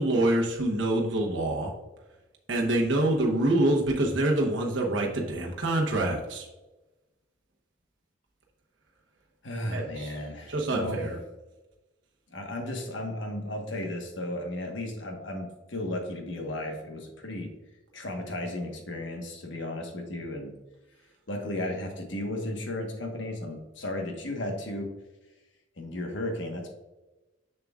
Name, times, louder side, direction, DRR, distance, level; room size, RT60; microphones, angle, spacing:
voice 1, 0.0-1.7 2.5-6.5 9.7-10.2 10.5-11.2, right 1 dB, 70° right, -1 dB, 0.9 m, -26 dB
voice 2, 9.4-11.0 12.3-17.5 17.9-20.5 21.3-24.9 25.8-26.7, left 1 dB, 70° left, 2 dB, 1.2 m, -34 dB
6.9 x 6.7 x 2.4 m, 1.1 s
head